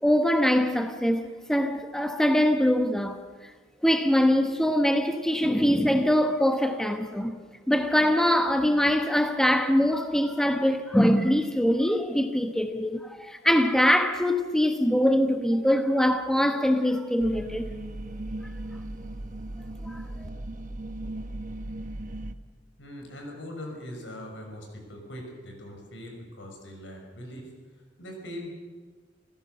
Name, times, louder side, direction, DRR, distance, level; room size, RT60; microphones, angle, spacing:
voice 1, 0.0-3.2 3.8-7.4 7.7-17.7 19.8-20.3, equal, 5° left, 1.1 m, -23 dB
sound 1, 17.2-22.3, right 1 dB, 45° right, 1.2 m, -37 dB
voice 2, 22.8-27.5 28.0-28.5, left 1 dB, 85° left, 6.1 m, -41 dB
28.0 x 15.5 x 6.8 m
head